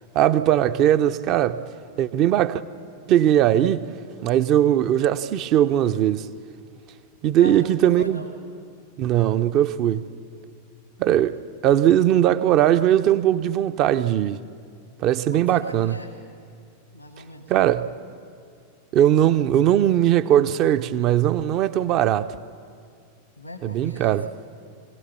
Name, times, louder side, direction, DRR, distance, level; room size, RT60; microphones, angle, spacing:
voice 1, 0.1-1.6 2.0-2.6 3.1-3.9 4.2-6.3 7.2-8.2 9.0-10.0 11.0-14.4 15.0-16.0 17.5-17.9 18.9-22.3 23.6-24.3, right 11 dB, 40° right, 0.6 m, -19 dB
voice 2, 7.4-8.3 15.3-16.1 16.9-17.5 23.4-24.3, left 1 dB, 90° left, 1.6 m, -40 dB
24.5 x 17.5 x 7.1 m
figure-of-eight pair, 90°, 0 cm